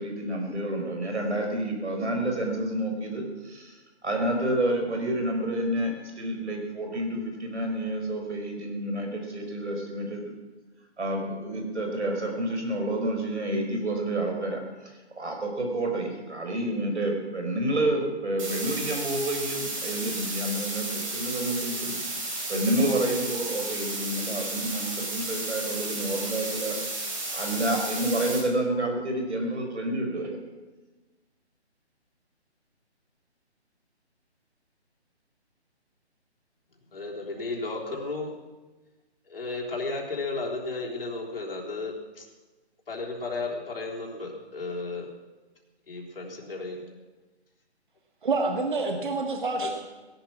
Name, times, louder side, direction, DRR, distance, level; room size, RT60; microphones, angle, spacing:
voice 1, 0.0-10.2 11.0-14.6 15.2-22.0 22.5-26.8 27.3-30.4, right 1 dB, 80° right, 3 dB, 5.1 m, -29 dB
sound 1, 18.4-28.4, right 2 dB, 30° right, 4.1 m, -33 dB
voice 2, 36.9-38.3 39.2-42.3 42.9-45.1 45.9-46.8 49.6-49.7, left 3 dB, 55° left, 0 dB, 3.6 m, -34 dB
voice 3, 48.2-49.7, right 3 dB, 45° right, 4 dB, 1.7 m, -27 dB
17.5 x 12.0 x 6.2 m, 1.2 s
hypercardioid pair, 170°, 34 cm